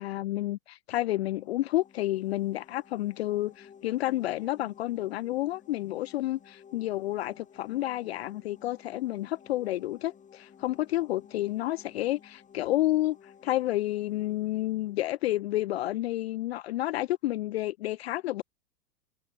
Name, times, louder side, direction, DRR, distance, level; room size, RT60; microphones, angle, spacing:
voice 1, 0.0-13.2 13.4-18.4, left 15 dB, 45° left, 0.5 m, -30 dB
sound 1, 1.1-15.8, left 7 dB, 15° left, 3.3 m, -56 dB
figure-of-eight pair, 105°, 44 cm